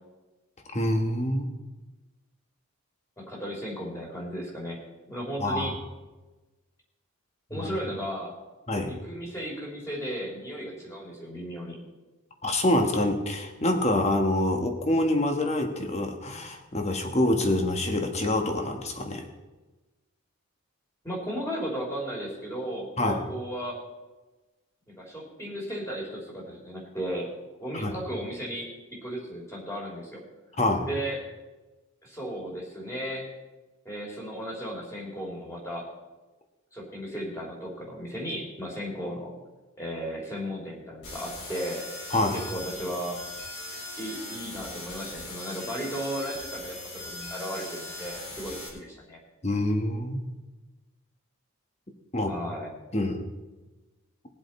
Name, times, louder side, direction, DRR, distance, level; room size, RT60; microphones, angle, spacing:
voice 1, 0.7-1.5 5.4-5.7 7.5-7.7 8.7-8.9 12.4-19.3 23.0-23.2 27.7-28.0 30.6-30.9 42.1-42.4 49.4-50.2 52.1-52.3 52.9-53.2, left 1 dB, 30° left, 4 dB, 1.4 m, -26 dB
voice 2, 3.2-4.8 5.1-5.8 7.5-8.4 8.9-11.8 21.0-23.8 25.0-27.3 27.6-30.2 30.9-31.2 32.0-33.3 33.8-35.9 36.7-39.3 39.8-41.9 42.3-43.2 44.0-49.2 52.3-52.7, equal, 15° left, -3 dB, 3.2 m, -35 dB
sound 1, 41.0-48.7, left 2 dB, 55° left, 4.2 m, -40 dB
20.5 x 7.6 x 4.3 m, 1.2 s
head